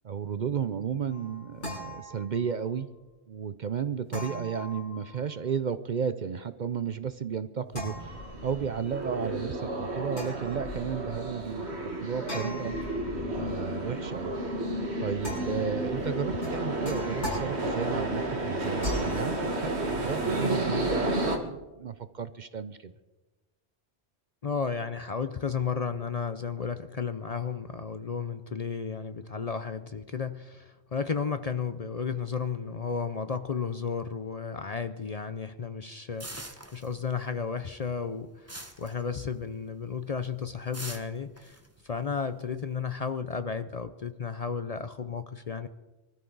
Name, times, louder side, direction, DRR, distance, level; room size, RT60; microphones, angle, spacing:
voice 1, 0.0-2.9 3.3-11.7 12.0-12.8 13.3-14.4 15.0-22.9, right 7 dB, 50° right, 12 dB, 0.7 m, -33 dB
sound 1, 1.1-2.7 4.1-5.5 7.7-8.8 10.1-11.2 12.3-13.7 15.2-15.9 16.4-18.0 18.8-19.2, left 1 dB, 80° left, 7.0 m, -39 dB
sound 2, 7.9-21.4, right 1 dB, 70° right, 2.0 m, -32 dB
voice 2, 24.4-41.6 41.8-45.7, left 6 dB, 45° left, 10 dB, 0.6 m, -33 dB
sound 3, 36.2-37.3 37.6-39.6 40.0-40.3 40.7-42.6, right 1 dB, 15° right, 1.2 m, -43 dB
24.5 x 13.5 x 4.0 m, 1.1 s
omnidirectional pair, 1.1 m